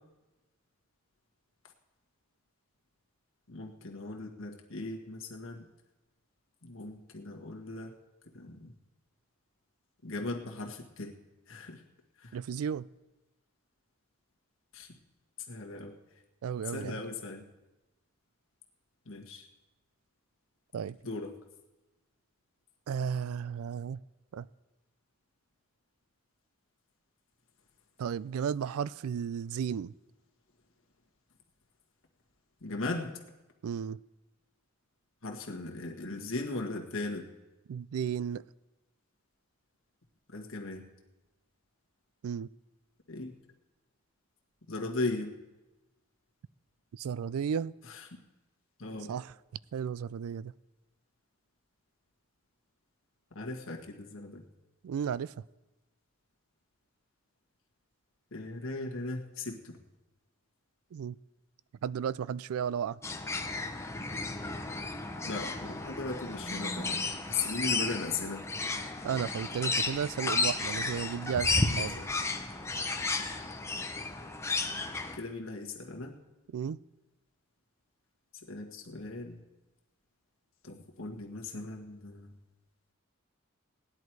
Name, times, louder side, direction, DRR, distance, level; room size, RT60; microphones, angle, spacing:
voice 1, 3.5-5.7 6.6-7.9 8.3-8.7 10.0-11.1 11.5-11.8 12.2-12.4 14.7-14.9 15.5-15.9 16.7-17.4 19.0-19.5 21.0-21.3 32.6-33.2 35.2-37.3 40.3-40.9 43.1-43.3 44.7-45.3 47.9-48.0 48.8-49.1 53.3-54.4 58.3-59.8 65.2-67.0 67.3-68.4 71.5-72.0 75.1-76.1 78.4-79.4 80.6-82.4, left 3 dB, 65° left, 1.6 m, -38 dB
voice 2, 12.3-12.9 16.4-17.0 20.7-21.0 22.9-24.0 24.3-24.5 28.0-29.9 33.6-34.0 37.7-38.5 42.2-42.5 46.9-47.7 49.1-49.3 49.7-50.5 54.8-55.3 60.9-61.2 61.8-63.0 69.0-72.0 76.5-76.8, right 7 dB, 85° right, 0.3 m, -34 dB
sound 1, 63.0-75.2, left 3 dB, 15° left, 0.8 m, -33 dB
18.0 x 10.5 x 4.7 m
head